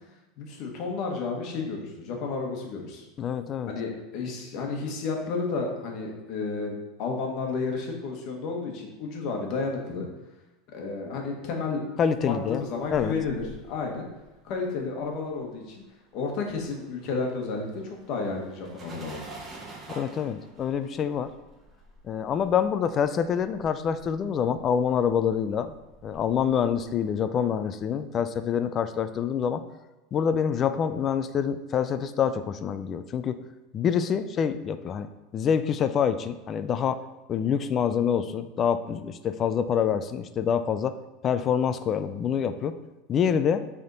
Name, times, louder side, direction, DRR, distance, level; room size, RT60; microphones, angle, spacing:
voice 1, 0.4-3.0 3.7-10.1 10.7-11.8 12.2-14.1 14.4-15.8 16.1-17.8 18.1-19.2, left 4 dB, 40° left, 1 dB, 1.2 m, -32 dB
voice 2, 3.2-3.7 12.0-12.6 12.9-13.1 19.9-21.3 22.0-25.7 26.0-29.6 30.1-33.4 33.7-35.1 35.3-37.0 37.3-41.0 41.2-42.7 43.1-43.6, left 7 dB, 25° left, 11 dB, 0.3 m, -26 dB
sound 1, 12.4-15.8 16.1-26.8, right 2 dB, 20° right, 0.9 m, -49 dB
7.9 x 3.6 x 3.9 m, 1.1 s
supercardioid pair, 165°, 0 cm